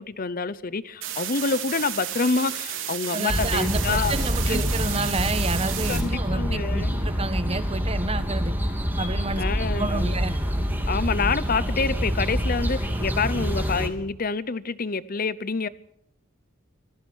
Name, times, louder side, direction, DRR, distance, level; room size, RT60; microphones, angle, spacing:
voice 1, 0.0-4.2 4.5-4.6 5.9-7.0 9.4-10.1 10.9-15.7, left 4 dB, 45° left, 0.7 m, -27 dB
sound 1, 1.0-6.0, right 10 dB, 65° right, 4.1 m, -32 dB
voice 2, 3.1-8.6 9.0-9.4 9.8-10.4 12.7-12.8, right 2 dB, 30° right, 1.5 m, -30 dB
sound 2, 3.3-13.9, equal, 10° right, 3.1 m, -26 dB
25.5 x 16.0 x 6.3 m
head